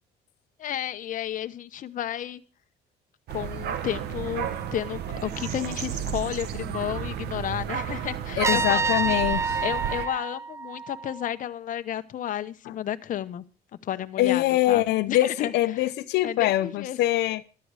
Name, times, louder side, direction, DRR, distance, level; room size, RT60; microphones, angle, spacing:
voice 1, 0.6-2.4 3.3-9.2 9.6-13.4 13.8-15.9 16.2-17.0, left 11 dB, 50° left, 0.9 m, -32 dB
sound 1, 3.3-10.1, right 9 dB, 75° right, 1.5 m, -33 dB
voice 2, 8.4-9.6 14.2-17.4, left 15 dB, 80° left, 0.8 m, -24 dB
Trumpet, 8.4-11.3, right 4 dB, 15° right, 0.6 m, -28 dB
13.5 x 11.5 x 4.9 m
cardioid pair, 110°, 17 cm